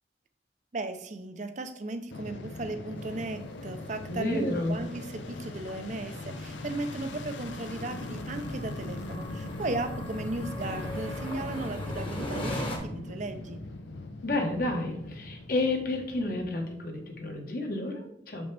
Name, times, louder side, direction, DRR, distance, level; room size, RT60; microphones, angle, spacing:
voice 1, 0.7-13.6, right 2 dB, 40° right, 9 dB, 0.6 m, -36 dB
Fixed-wing aircraft airplane, 2.1-17.3, left 2 dB, 85° left, 0.7 m, -40 dB
sound 1, 3.0-12.8, left 1 dB, 30° left, 1.1 m, -41 dB
voice 2, 4.1-4.8 14.2-18.5, left 2 dB, 50° left, 3 dB, 1.2 m, -31 dB
sound 2, 10.6-17.4, right 1 dB, 80° right, 0.9 m, -50 dB
7.1 x 5.2 x 3.3 m, 0.78 s
head